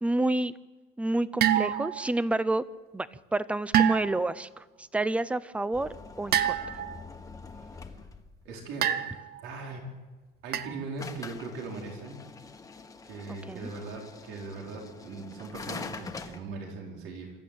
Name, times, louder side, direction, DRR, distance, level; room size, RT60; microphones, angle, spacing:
voice 1, 0.0-0.5 1.0-2.7 2.9-6.6 13.3-13.7, right 2 dB, 5° right, 16 dB, 0.6 m, -29 dB
sound 1, 1.4-2.1 3.7-4.3 6.3-7.0 8.8-9.4 10.5-10.8, right 10 dB, 55° right, 1.0 m, -26 dB
sound 2, 5.7-8.5 11.0-16.4, left 4 dB, 15° left, 1.4 m, -44 dB
voice 2, 7.5-8.0 8.4-9.8 10.4-12.2 13.1-17.3, right 3 dB, 85° right, 0 dB, 4.9 m, -40 dB
26.5 x 14.0 x 8.7 m, 1.3 s
cardioid pair, 155°, 20 cm